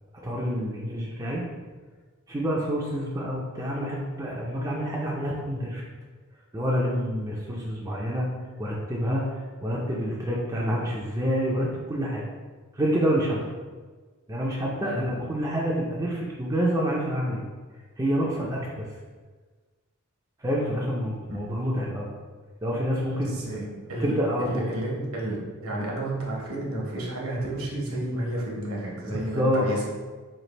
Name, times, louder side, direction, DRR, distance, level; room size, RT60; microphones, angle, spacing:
voice 1, 0.2-1.4 2.3-5.8 6.5-8.3 8.6-9.3 9.6-12.3 12.8-13.5 14.3-17.4 18.0-18.9 20.4-22.1 22.6-23.7 24.0-24.7 29.1-29.7, equal, 15° right, -4 dB, 0.4 m, -27 dB
voice 2, 23.1-29.8, right 1 dB, 70° right, -3 dB, 0.9 m, -31 dB
3.2 x 2.5 x 3.9 m, 1.4 s
head